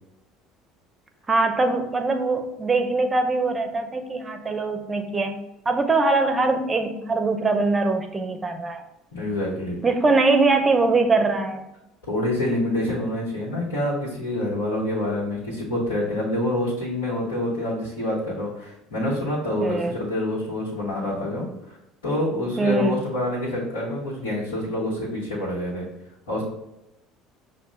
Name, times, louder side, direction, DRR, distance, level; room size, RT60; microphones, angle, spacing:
voice 1, 1.3-5.4 5.7-8.8 9.8-11.7 19.6-19.9 22.6-23.0, right 3 dB, 25° right, 5 dB, 0.6 m, -22 dB
voice 2, 9.1-9.8 12.1-21.8 22.0-25.9 26.3-26.4, left 1 dB, 85° left, -9 dB, 1.1 m, -27 dB
6.1 x 2.2 x 2.3 m, 0.90 s
hypercardioid pair, 70°, 0 cm